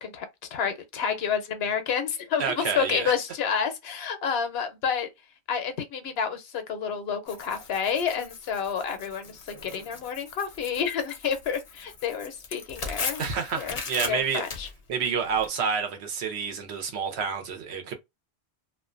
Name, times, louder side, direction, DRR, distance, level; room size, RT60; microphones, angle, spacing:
voice 1, 0.0-5.1 5.5-13.2 13.6-13.8 14.1-14.7, left 7 dB, 75° left, 0.9 m, -29 dB
voice 2, 2.4-3.1 13.2-14.4 14.9-18.0, right 6 dB, 90° right, 1.0 m, -29 dB
Tearing, 7.3-15.5, left 5 dB, 45° left, 0.5 m, -39 dB
2.4 x 2.2 x 2.4 m
omnidirectional pair, 1.1 m